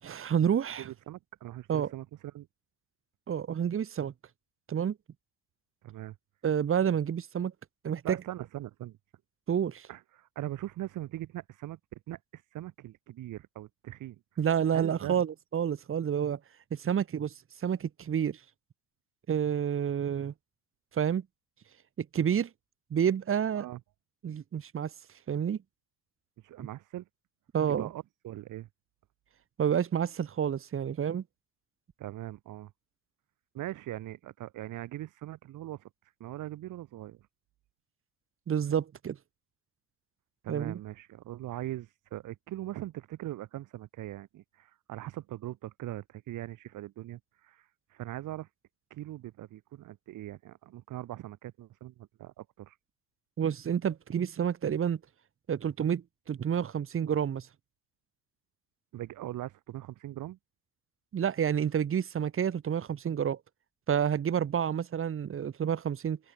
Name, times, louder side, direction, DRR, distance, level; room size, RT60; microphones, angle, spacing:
voice 1, 0.0-0.9 1.7-1.9 3.3-4.1 4.7-5.0 6.4-7.5 7.8-8.2 9.5-9.9 14.4-16.4 16.7-17.3 17.6-18.4 19.3-20.3 20.9-21.2 22.0-22.5 22.9-23.7 24.2-24.9 25.3-25.6 26.6-26.7 27.5-27.9 29.6-31.2 38.5-39.2 40.5-40.8 53.4-55.0 55.5-57.5 61.1-63.4 63.9-66.2, right 8 dB, 35° right, 5.8 m, -29 dB
voice 2, 0.8-2.5 5.8-6.2 8.0-9.0 9.9-14.2 14.7-15.2 23.5-23.8 26.4-27.1 27.7-28.7 32.0-32.7 33.5-35.9 36.2-37.2 40.4-48.5 48.9-52.8 58.9-60.4, right 14 dB, 60° right, 6.0 m, -41 dB
open air
cardioid pair, 115°, 35 cm